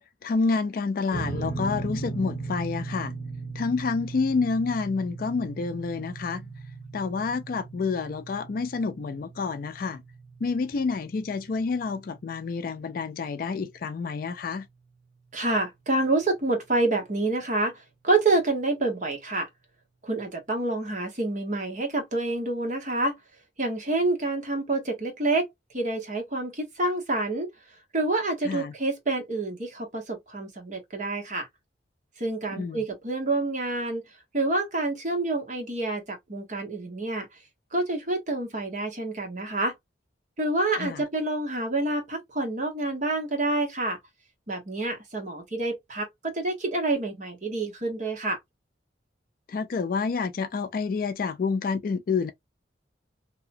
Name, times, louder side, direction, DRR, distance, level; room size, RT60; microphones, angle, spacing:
voice 1, 0.0-3.1 3.6-6.5 6.9-10.0 10.4-14.7 28.4-28.7 32.6-32.8 40.8-41.0 49.5-52.3, left 4 dB, 50° left, 0.3 m, -28 dB
sound 1, 1.1-13.6, right 3 dB, 15° left, 1.0 m, -38 dB
voice 2, 15.3-19.5 20.0-23.1 23.6-25.5 25.7-27.5 27.9-31.5 32.2-34.0 34.3-37.3 37.7-39.7 40.4-44.0 44.5-48.4, right 2 dB, 40° right, 1.1 m, -27 dB
2.8 x 2.2 x 2.5 m
head